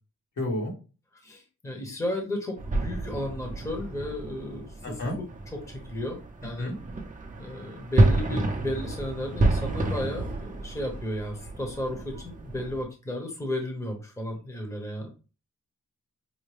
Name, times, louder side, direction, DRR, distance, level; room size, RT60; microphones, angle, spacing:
voice 1, 0.4-0.7 4.8-5.2 6.6-6.8, left 1 dB, 75° left, -1 dB, 1.7 m, -30 dB
voice 2, 1.2-5.3 5.5-6.7 7.4-15.1, left 1 dB, 10° left, 2 dB, 0.8 m, -34 dB
sound 1, 2.6-12.8, right 2 dB, 25° right, 0.6 m, -29 dB
5.5 x 2.2 x 3.2 m, 0.33 s
wide cardioid pair, 170°, 31 cm